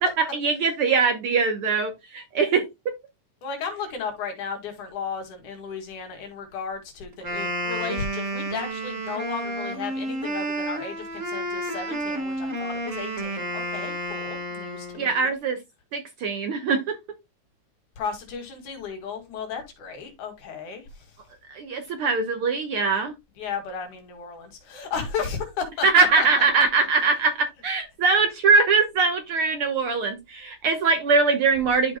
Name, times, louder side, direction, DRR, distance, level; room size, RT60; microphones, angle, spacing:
voice 1, 0.0-2.7 15.0-15.6 15.9-17.0 21.5-23.1 25.8-32.0, right 4 dB, 60° right, 1.5 m, -22 dB
voice 2, 3.4-15.3 18.0-21.1 23.4-26.3, left 6 dB, 80° left, 3.5 m, -34 dB
Wind instrument woodwind instrument, 7.1-15.2, right 1 dB, 30° right, 1.7 m, -31 dB
12.5 x 5.2 x 2.2 m
omnidirectional pair, 3.5 m